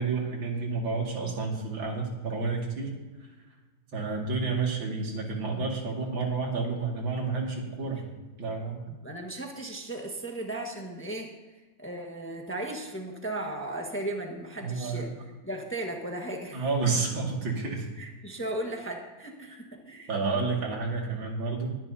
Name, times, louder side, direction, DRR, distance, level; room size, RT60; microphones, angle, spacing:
voice 1, 0.0-2.9 3.9-8.0 8.4-8.8 14.6-15.1 16.5-17.9 20.1-21.8, right 4 dB, 90° right, -1 dB, 3.0 m, -30 dB
voice 2, 8.9-11.3 11.8-15.1 15.4-16.9 18.0-20.1, right 1 dB, 5° left, 1 dB, 1.2 m, -36 dB
21.5 x 10.5 x 2.8 m, 1.2 s
omnidirectional pair, 2.1 m